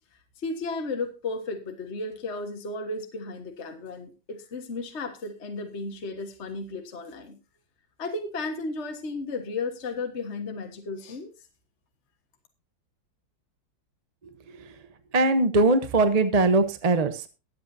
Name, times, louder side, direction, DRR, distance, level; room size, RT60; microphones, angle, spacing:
voice 1, 0.4-7.4 8.0-11.3, left 3 dB, 35° left, 5 dB, 1.6 m, -34 dB
voice 2, 15.1-17.3, right 2 dB, 30° right, 10 dB, 0.7 m, -21 dB
23.0 x 8.0 x 2.7 m, 0.28 s
omnidirectional pair, 2.1 m